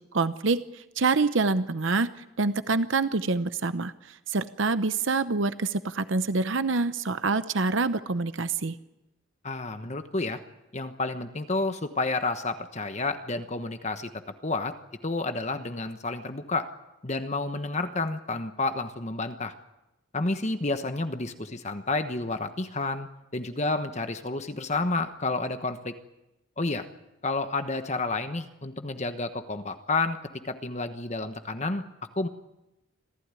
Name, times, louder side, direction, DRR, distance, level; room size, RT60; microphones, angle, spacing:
voice 1, 0.1-2.1 2.4-8.8, right 3 dB, 65° right, 12 dB, 0.8 m, -26 dB
voice 2, 9.4-10.4 10.7-14.1 14.4-14.7 15.0-16.7 17.0-19.5 20.1-25.9 26.6-26.8 27.2-30.2 30.4-31.8 32.1-32.3, left 3 dB, 35° left, 8 dB, 1.2 m, -30 dB
26.5 x 16.0 x 9.7 m, 0.93 s
head